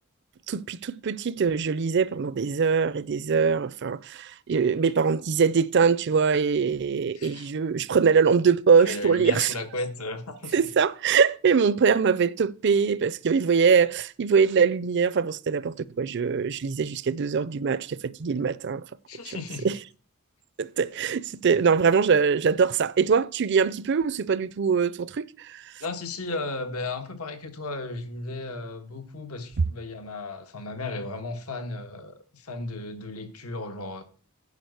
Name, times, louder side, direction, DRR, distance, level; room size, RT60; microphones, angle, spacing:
voice 1, 0.5-9.5 10.5-18.8 19.3-19.4 19.6-19.7 20.6-25.6, right 6 dB, 50° right, 0.5 m, -23 dB
voice 2, 7.1-7.5 8.8-10.7 19.1-19.7 25.8-34.0, left 2 dB, 80° left, 1.5 m, -35 dB
10.5 x 5.1 x 7.9 m
head